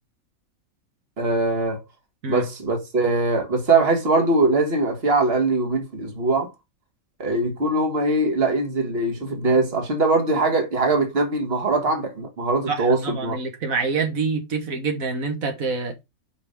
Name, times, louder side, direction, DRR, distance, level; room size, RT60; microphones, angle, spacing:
voice 1, 1.2-1.8 2.3-6.5 7.2-13.4, right 3 dB, 45° right, 1.9 m, -21 dB
voice 2, 12.7-15.9, right 4 dB, 90° right, 1.9 m, -26 dB
5.3 x 5.2 x 5.0 m
omnidirectional pair, 1.4 m